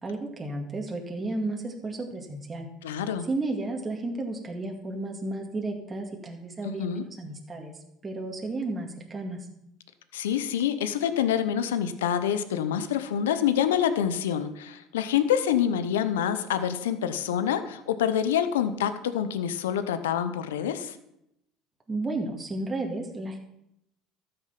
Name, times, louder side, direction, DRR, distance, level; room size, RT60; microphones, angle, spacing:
voice 1, 0.0-2.7 3.2-7.7 8.0-9.5 21.9-23.4, right 2 dB, 25° right, 1 dB, 2.1 m, -33 dB
voice 2, 2.8-3.3 6.6-7.0 10.1-21.0, left 9 dB, 85° left, 11 dB, 0.8 m, -26 dB
13.0 x 6.8 x 5.8 m, 0.80 s
hypercardioid pair, 80°, 0 cm